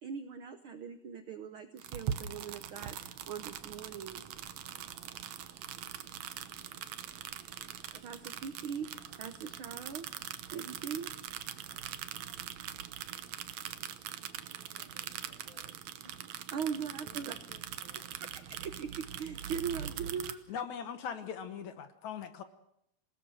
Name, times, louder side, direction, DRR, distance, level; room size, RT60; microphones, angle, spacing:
voice 1, 0.0-4.2 7.9-10.1 10.5-11.1 16.5-17.3 18.2-20.4, right 7 dB, 80° right, 9 dB, 1.1 m, -40 dB
sound 1, 1.8-20.3, right 10 dB, 65° right, 2.0 m, -42 dB
sound 2, 3.1-10.0, right 3 dB, 40° right, 5.0 m, -63 dB
voice 2, 14.7-15.7 16.0-16.2 17.0-18.1, left 5 dB, 15° left, 3 dB, 2.3 m, -60 dB
voice 3, 20.5-22.4, left 7 dB, 65° left, 10 dB, 2.3 m, -40 dB
27.5 x 18.0 x 6.4 m, 0.75 s
omnidirectional pair, 3.9 m